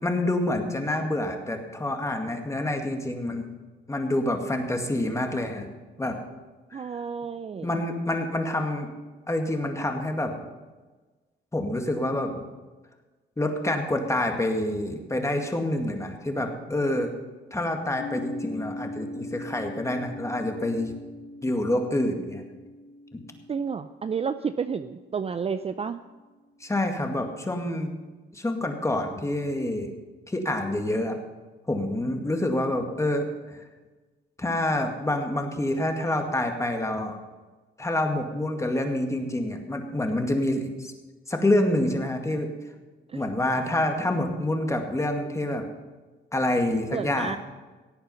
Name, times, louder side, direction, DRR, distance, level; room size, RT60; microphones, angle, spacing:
voice 1, 0.0-3.5 3.9-5.7 6.0-6.2 6.7-6.8 7.6-8.9 9.3-10.3 11.5-12.3 13.4-17.1 17.5-20.9 21.4-22.4 23.1-23.2 26.6-27.9 28.3-29.9 30.3-31.2 31.7-33.6 34.4-37.2 37.8-40.9 41.3-42.5 43.1-45.6 46.3-47.4, left 1 dB, 15° left, 4 dB, 2.1 m, -27 dB
voice 2, 6.7-7.8 23.5-26.0 43.1-43.4 46.9-47.4, right 6 dB, 30° right, 11 dB, 0.5 m, -31 dB
sound 1, 18.0-25.8, left 2 dB, 75° left, 1.3 m, -41 dB
17.0 x 8.8 x 5.6 m, 1.3 s
cardioid pair, 90°, 20 cm